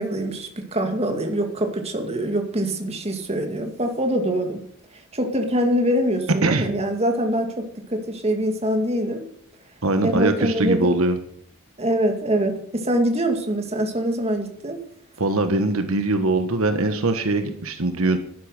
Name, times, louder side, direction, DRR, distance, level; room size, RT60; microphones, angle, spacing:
voice 1, 0.0-4.6 5.1-9.2 10.0-10.9 11.8-14.8, right 1 dB, 30° right, 4 dB, 2.3 m, -24 dB
voice 2, 9.8-11.2 15.2-18.2, right 2 dB, 70° right, 7 dB, 1.4 m, -22 dB
12.0 x 11.5 x 6.6 m, 0.64 s
head